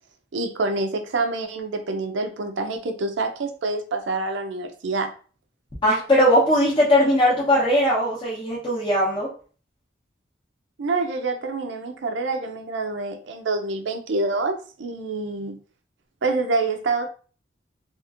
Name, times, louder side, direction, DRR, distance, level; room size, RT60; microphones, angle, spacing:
voice 1, 0.3-5.1 10.8-15.5 16.2-17.1, right 3 dB, 70° right, 6 dB, 0.5 m, -26 dB
voice 2, 5.8-9.3, equal, 30° left, -8 dB, 0.7 m, -19 dB
2.8 x 2.5 x 2.4 m, 0.39 s
head